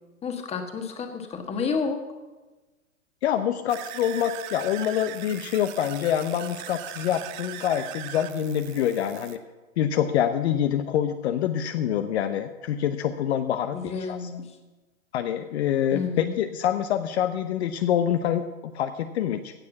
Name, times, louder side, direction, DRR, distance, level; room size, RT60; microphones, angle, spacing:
voice 1, 0.2-2.0 13.7-14.4 15.9-16.3, left 5 dB, 15° left, 5 dB, 1.4 m, -30 dB
voice 2, 3.2-9.4 9.8-14.3 15.1-18.5 18.7-19.5, left 10 dB, 50° left, 9 dB, 0.8 m, -26 dB
sound 1, 3.7-9.4, right 13 dB, 35° right, 0.8 m, -40 dB
16.0 x 6.4 x 7.1 m, 1.2 s
hypercardioid pair, 125°, 41 cm